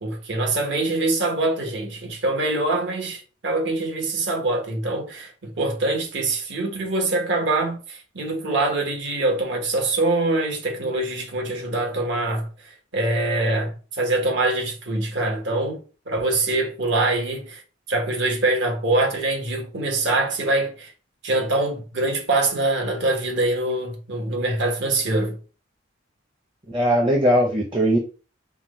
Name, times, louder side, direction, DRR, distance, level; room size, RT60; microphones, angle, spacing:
voice 1, 0.0-17.6 17.9-20.9 21.2-25.4, right 2 dB, 65° right, 1.2 m, -24 dB
voice 2, 26.7-28.0, equal, 25° right, 0.6 m, -19 dB
5.9 x 2.2 x 3.7 m
head